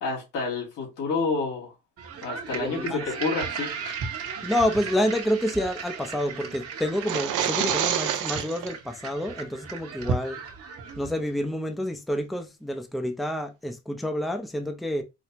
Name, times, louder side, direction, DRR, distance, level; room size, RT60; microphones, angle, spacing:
voice 1, 0.0-1.7 2.2-3.7, left 4 dB, 85° left, 2.3 m, -29 dB
sound 1, 2.0-11.3, right 5 dB, 50° right, 1.1 m, -35 dB
voice 2, 2.5-3.1 4.4-10.4 11.0-15.0, left 1 dB, ahead, 0.6 m, -28 dB
sound 2, 6.9-8.7, right 9 dB, 80° right, 0.7 m, -27 dB
5.0 x 2.1 x 2.9 m
cardioid pair, 90°, 30 cm